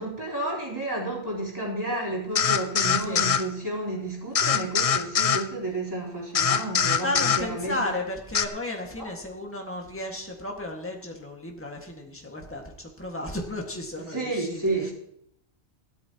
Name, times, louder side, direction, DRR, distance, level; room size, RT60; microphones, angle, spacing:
voice 1, 0.0-7.9 9.0-9.1 14.0-14.9, right 2 dB, 20° right, -6 dB, 3.8 m, -31 dB
sound 1, 2.4-3.4 4.3-5.4 6.3-7.4 8.3-8.5, left 7 dB, 45° left, 0.5 m, -23 dB
voice 2, 7.0-12.6 13.0-14.6, left 1 dB, 10° left, 0 dB, 1.8 m, -33 dB
17.0 x 12.5 x 2.9 m, 0.69 s
omnidirectional pair, 1.1 m